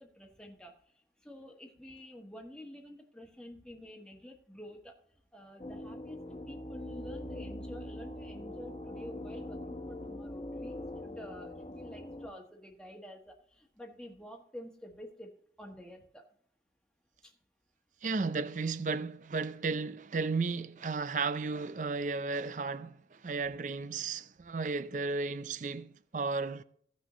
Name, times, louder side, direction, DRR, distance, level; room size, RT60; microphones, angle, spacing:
voice 1, 0.0-16.3 17.2-17.3, equal, 5° left, 1.2 m, -49 dB
sound 1, 5.6-12.3, left 1 dB, 30° left, 0.8 m, -42 dB
voice 2, 18.0-26.6, right 4 dB, 45° right, 0.4 m, -34 dB
16.0 x 6.2 x 3.1 m
head